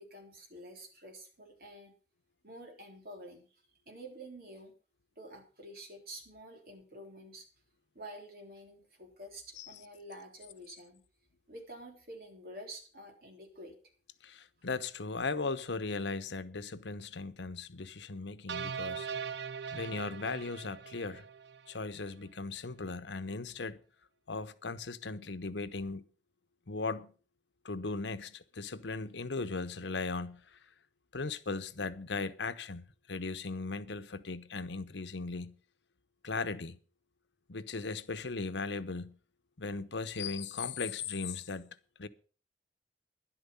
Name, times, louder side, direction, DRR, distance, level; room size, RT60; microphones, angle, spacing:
voice 1, 0.0-1.9 2.4-4.7 5.2-7.5 7.9-11.0 11.5-13.8, right 1 dB, 55° right, 3.6 m, -49 dB
voice 2, 14.2-19.1 19.7-21.3 21.7-23.8 24.3-26.0 26.7-27.1 27.6-30.4 31.1-35.6 36.2-36.8 37.5-39.2 39.6-42.1, left 4 dB, 90° left, 0.9 m, -37 dB
sound 1, 18.5-21.8, right 6 dB, 75° right, 0.5 m, -40 dB
12.0 x 11.0 x 5.5 m
head